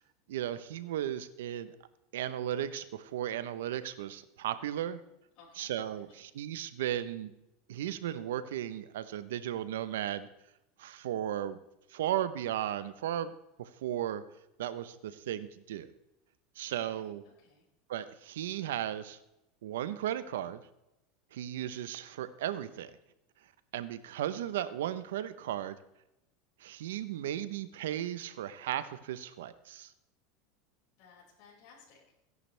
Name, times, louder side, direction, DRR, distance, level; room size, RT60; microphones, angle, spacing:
voice 1, 0.3-1.7 2.1-5.0 5.6-7.3 7.7-10.3 10.8-11.6 11.9-14.2 14.6-15.9 16.6-17.2 17.9-19.2 19.6-20.6 21.3-22.9 23.7-25.8 26.6-29.9, right 11 dB, 85° right, 13 dB, 0.9 m, -35 dB
voice 2, 5.4-6.2 16.7-17.6 31.0-32.0, left 5 dB, 60° left, -5 dB, 5.7 m, -59 dB
16.5 x 11.0 x 3.4 m, 0.87 s
supercardioid pair, 120°, 0 cm